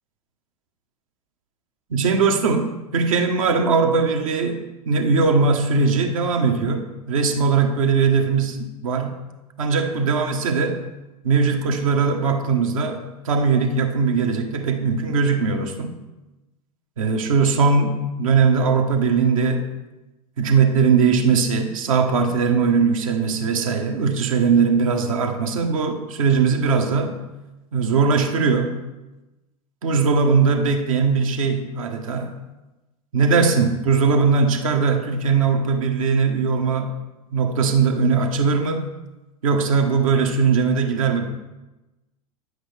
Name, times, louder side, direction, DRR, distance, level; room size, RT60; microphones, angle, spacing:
voice 1, 1.9-9.2 9.6-10.8 11.2-15.9 17.0-19.7 20.4-27.2 27.7-28.8 29.8-32.3 33.1-37.0 37.3-38.9 39.4-41.3, right 5 dB, 60° right, 5 dB, 1.3 m, -20 dB
9.4 x 8.0 x 3.4 m, 1.0 s
figure-of-eight pair, 90°, 19 cm